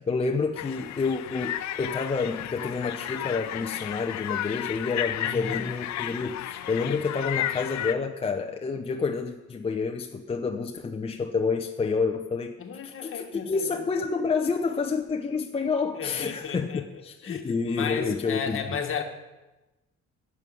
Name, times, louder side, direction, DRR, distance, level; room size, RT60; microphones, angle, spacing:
voice 1, 0.0-12.5 12.8-18.6, left 4 dB, 20° left, 3 dB, 0.6 m, -29 dB
sound 1, 0.6-7.9, left 12 dB, 70° left, 0.6 m, -33 dB
voice 2, 5.2-5.6 12.6-13.8 15.9-19.0, left 6 dB, 45° left, 5 dB, 1.5 m, -34 dB
11.0 x 7.1 x 9.3 m, 1.1 s
cardioid pair, 150°, 29 cm